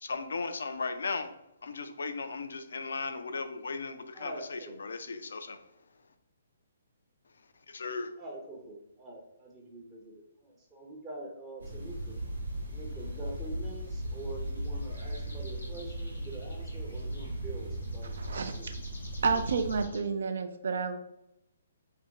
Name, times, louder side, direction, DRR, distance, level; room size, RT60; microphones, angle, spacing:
voice 1, 0.0-1.3 1.6-5.6 7.7-8.1, left 4 dB, 70° left, 8 dB, 0.3 m, -36 dB
voice 2, 4.1-4.8 8.2-12.2 12.7-18.7 19.3-19.4, right 1 dB, 20° right, -2 dB, 0.6 m, -45 dB
sound 1, 11.6-19.8, right 1 dB, 85° right, 1.0 m, -37 dB
sound 2, 12.8-20.1, left 1 dB, 85° left, 1.0 m, -54 dB
voice 3, 18.1-18.7 19.2-21.0, right 5 dB, 65° right, 7 dB, 0.4 m, -30 dB
2.5 x 2.2 x 3.6 m, 0.84 s
figure-of-eight pair, 135°, 0 cm